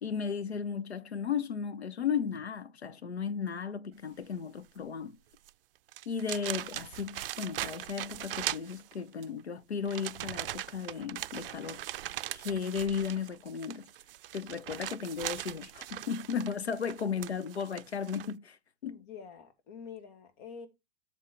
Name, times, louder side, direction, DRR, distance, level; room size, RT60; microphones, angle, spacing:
voice 1, 0.0-5.2 6.1-11.9 12.3-13.9 14.3-18.6 18.8-19.0, left 6 dB, 85° left, 0.9 m, -35 dB
sound 1, 5.4-5.5 5.9-9.2 9.8-18.3, right 13 dB, 60° right, 0.4 m, -40 dB
voice 2, 18.9-20.7, left 6 dB, 50° left, 2.1 m, -47 dB
7.7 x 3.6 x 5.6 m
figure-of-eight pair, 105°, 32 cm